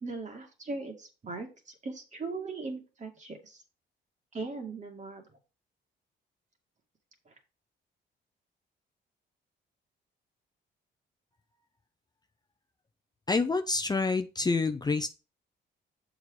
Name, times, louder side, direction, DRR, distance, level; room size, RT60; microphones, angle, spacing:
voice 1, 0.0-3.6 4.3-5.3 7.3-7.4, right 3 dB, 35° right, 3 dB, 2.3 m, -39 dB
voice 2, 13.3-15.1, left 3 dB, 20° left, 7 dB, 0.6 m, -27 dB
7.2 x 4.9 x 4.8 m, 0.32 s
cardioid pair, 90°, 20 cm